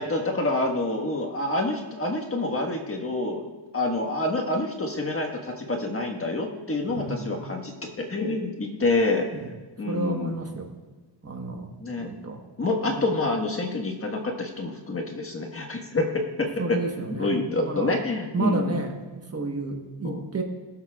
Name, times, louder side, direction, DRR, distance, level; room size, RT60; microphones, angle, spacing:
voice 1, 0.0-9.3 9.8-10.3 11.8-12.1 12.6-16.8 17.1-18.8 20.0-20.3, left 2 dB, 30° left, 2 dB, 1.5 m, -27 dB
voice 2, 6.9-7.3 9.3-9.5 9.9-10.7 11.2-11.7 12.0-12.4 12.8-13.0 16.6-17.9 18.3-20.4, right 3 dB, 30° right, 3 dB, 1.3 m, -31 dB
22.0 x 7.5 x 2.4 m, 1.3 s
cardioid pair, 125°, 47 cm